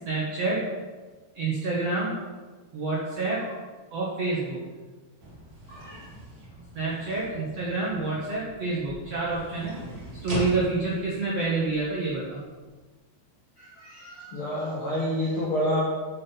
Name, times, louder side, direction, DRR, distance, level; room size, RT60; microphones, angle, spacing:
voice 1, 0.0-0.7 1.3-2.2 2.7-3.5 3.9-4.6 6.7-9.8 10.2-12.4, right 3 dB, 80° right, -5 dB, 1.4 m, -28 dB
sound 1, 5.2-12.7, right 1 dB, 60° right, 0.9 m, -41 dB
voice 2, 5.7-6.0 13.6-15.8, equal, 80° left, -6 dB, 1.2 m, -29 dB
8.1 x 7.4 x 3.9 m, 1.3 s
omnidirectional pair, 4.8 m